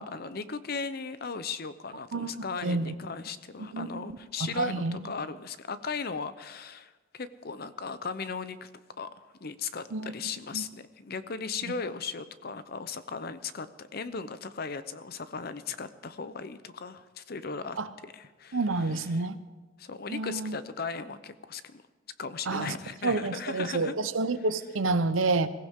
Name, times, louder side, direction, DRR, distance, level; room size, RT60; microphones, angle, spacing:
voice 1, 0.0-8.7 9.0-17.8 18.1-19.3 19.8-21.8 22.2-23.9, left 5 dB, 50° left, 13 dB, 0.7 m, -37 dB
voice 2, 2.1-2.9 3.7-4.1 4.4-5.1 9.9-10.1 10.5-10.6 17.8-17.9 18.5-19.4 20.1-20.6 22.5-22.7 23.0-25.5, right 3 dB, 90° right, 12 dB, 0.8 m, -29 dB
22.0 x 15.5 x 3.7 m, 1.3 s
head